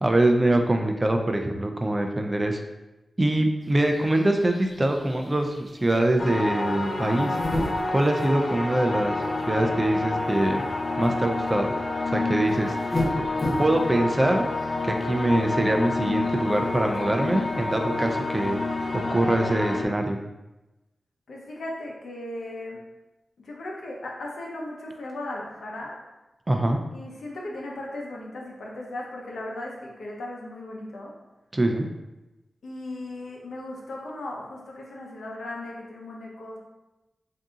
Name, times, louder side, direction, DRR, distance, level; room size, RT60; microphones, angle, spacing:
voice 1, 0.0-2.6 3.2-7.4 7.9-9.2 9.5-10.6 11.0-11.7 12.1-12.8 13.6-14.5 14.8-18.6 18.9-20.2 26.5-26.8 31.5-31.9, right 1 dB, 25° right, 4 dB, 0.4 m, -23 dB
sound 1, 3.6-19.0, left 1 dB, 40° left, 0.9 m, -37 dB
sound 2, 6.2-19.8, left 2 dB, 60° left, 0.5 m, -29 dB
voice 2, 21.3-22.8 23.4-26.0 26.9-31.1 32.6-36.6, left 1 dB, 90° left, -2 dB, 0.8 m, -37 dB
3.6 x 2.7 x 3.7 m, 1.0 s
wide cardioid pair, 105°, 0 cm